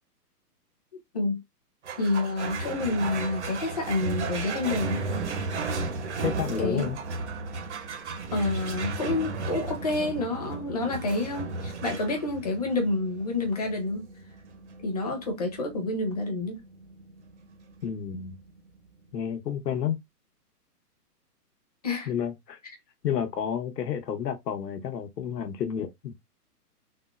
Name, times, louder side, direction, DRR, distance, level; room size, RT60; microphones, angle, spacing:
voice 1, 0.9-1.4 2.0-5.0 6.6-6.9 8.3-14.1 14.8-16.6 21.8-22.1, left 2 dB, 25° left, 0.6 m, -28 dB
sound 1, 1.8-18.6, right 3 dB, 45° right, 0.5 m, -35 dB
voice 2, 6.2-7.0 17.8-18.4 19.1-20.0 22.1-22.6 23.0-26.2, left 8 dB, 85° left, 1.0 m, -30 dB
3.6 x 2.1 x 2.4 m
hypercardioid pair, 170°, 48 cm